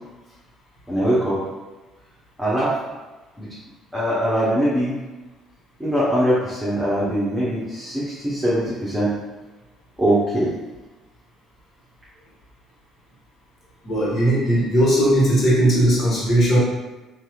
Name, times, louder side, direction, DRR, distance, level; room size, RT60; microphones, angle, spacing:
voice 1, 0.9-1.4 2.4-2.7 3.4-3.5 3.9-4.9 5.8-9.1 10.0-10.5, equal, 10° right, -10 dB, 0.9 m, -21 dB
voice 2, 13.8-16.6, right 1 dB, 40° left, -7 dB, 1.4 m, -18 dB
2.9 x 2.4 x 2.4 m, 1.2 s
figure-of-eight pair, 50°, 0 cm